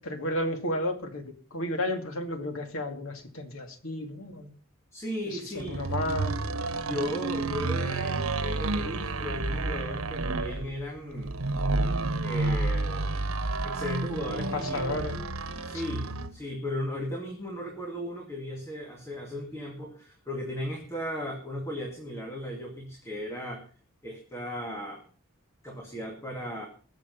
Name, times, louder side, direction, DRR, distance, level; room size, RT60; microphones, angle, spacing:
voice 1, 0.0-4.5 5.3-6.3 14.5-15.2 15.9-16.0, left 1 dB, 80° left, 5 dB, 2.6 m, -33 dB
voice 2, 4.9-5.8 6.8-11.4 12.2-13.2 13.6-15.0 15.6-23.6 24.0-25.0 25.6-26.7, equal, 15° left, 1 dB, 2.1 m, -36 dB
sound 1, 5.6-16.4, right 2 dB, 85° right, 1.2 m, -30 dB
21.0 x 7.4 x 5.5 m, 0.41 s
head